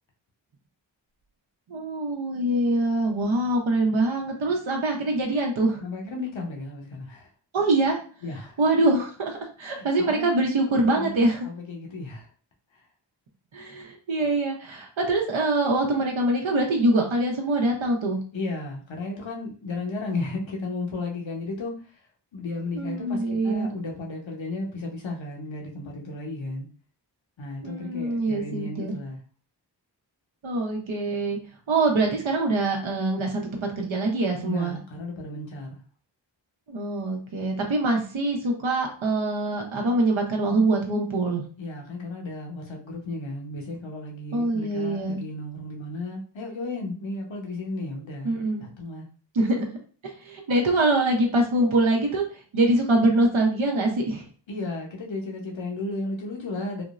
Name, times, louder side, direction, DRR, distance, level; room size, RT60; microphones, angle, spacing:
voice 1, 1.7-5.8 7.5-8.0 8.6-11.5 13.5-18.2 22.7-23.7 27.6-29.0 30.4-31.4 31.7-34.8 36.7-41.4 44.3-45.2 48.2-48.6 49.3-49.6 50.0-54.3, right 2 dB, 85° right, 1 dB, 0.7 m, -24 dB
voice 2, 5.8-7.3 8.2-8.6 9.7-10.3 10.7-12.3 12.7-12.8 18.3-22.0 22.3-26.7 27.4-29.2 34.4-35.8 41.6-49.1 54.5-56.8, left 2 dB, 75° left, 0 dB, 0.9 m, -34 dB
3.5 x 2.0 x 2.4 m, 0.39 s
wide cardioid pair, 55°, 46 cm